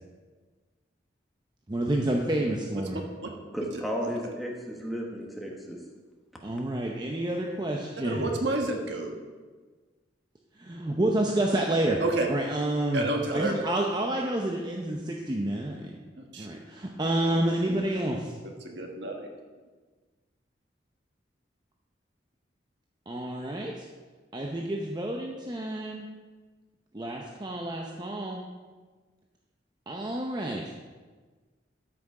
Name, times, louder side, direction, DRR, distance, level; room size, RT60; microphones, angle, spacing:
voice 1, 1.7-3.0 6.4-8.4 10.6-12.0 12.3-16.0 16.4-18.4 23.1-23.9 24.3-26.1 26.9-28.4 29.9-30.7, right 1 dB, 25° right, 0 dB, 0.7 m, -29 dB
voice 2, 3.5-5.8, equal, ahead, -2 dB, 1.3 m, -33 dB
voice 3, 8.0-9.1 12.0-12.3 12.9-13.6 16.2-16.5 18.6-19.3, right 2 dB, 70° right, 2 dB, 1.5 m, -29 dB
12.5 x 6.0 x 4.9 m, 1.4 s
head